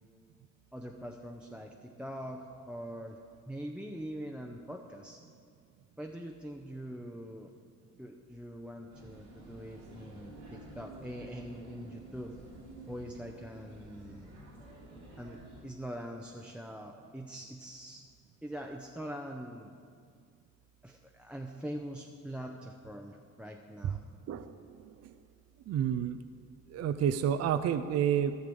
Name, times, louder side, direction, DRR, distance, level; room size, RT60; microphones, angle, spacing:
voice 1, 0.7-3.2 3.5-5.2 6.0-7.5 8.0-12.4 12.9-14.3 15.2-18.0 18.4-19.7 20.8-24.0, equal, 5° right, 1 dB, 0.6 m, -43 dB
sound 1, 8.9-15.6, right 2 dB, 85° right, 2.9 m, -51 dB
voice 2, 24.3-25.1 25.7-26.2 26.7-28.4, right 9 dB, 55° right, 11 dB, 0.5 m, -30 dB
14.0 x 6.6 x 5.3 m, 2.2 s
cardioid pair, 90°, 30 cm